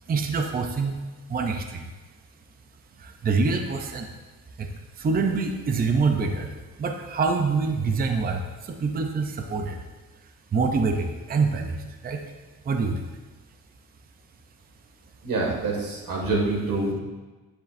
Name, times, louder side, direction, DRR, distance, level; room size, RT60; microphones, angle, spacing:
voice 1, 0.1-1.0 1.3-1.9 3.0-4.1 4.6-6.5 6.8-9.8 10.5-12.2 12.6-13.1, right 4 dB, 25° right, 4 dB, 0.5 m, -26 dB
voice 2, 15.2-17.0, right 2 dB, 60° right, -1 dB, 2.0 m, -26 dB
9.9 x 7.2 x 2.5 m, 1.2 s
wide cardioid pair, 180°, 37 cm